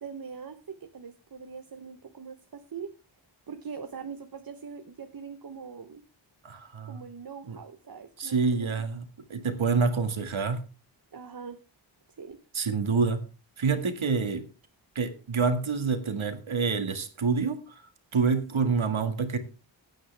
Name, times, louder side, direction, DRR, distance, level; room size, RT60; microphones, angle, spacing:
voice 1, 0.0-2.9 3.5-6.0 6.9-8.7 11.1-11.6 12.2-12.4 18.3-18.8, right 6 dB, 45° right, 1.1 m, -42 dB
voice 2, 6.4-7.0 7.4-7.6 8.2-10.7 12.5-13.2 13.6-14.5 15.0-17.8 18.1-19.4, right 5 dB, 80° right, 2.0 m, -27 dB
16.0 x 9.4 x 3.5 m
wide cardioid pair, 100°, 48 cm